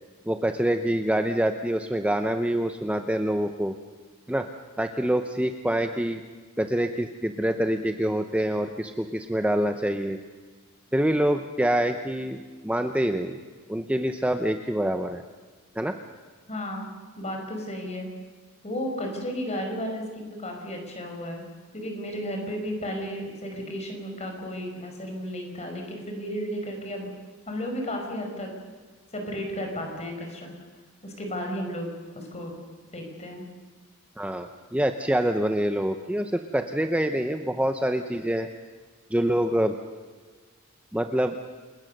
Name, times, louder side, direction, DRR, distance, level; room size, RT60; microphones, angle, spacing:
voice 1, 0.3-3.7 4.3-4.5 4.8-6.2 6.6-10.2 10.9-13.4 13.7-15.2 15.7-16.0 34.2-38.5 39.1-39.8 40.9-41.4, right 1 dB, 5° right, 6 dB, 0.8 m, -26 dB
voice 2, 16.5-16.9 17.2-18.1 18.6-21.4 21.7-27.1 27.5-28.5 29.1-30.5 31.0-31.9 32.1-32.5 32.9-33.5, equal, 30° left, 3 dB, 5.3 m, -33 dB
28.0 x 20.0 x 6.6 m, 1.4 s
head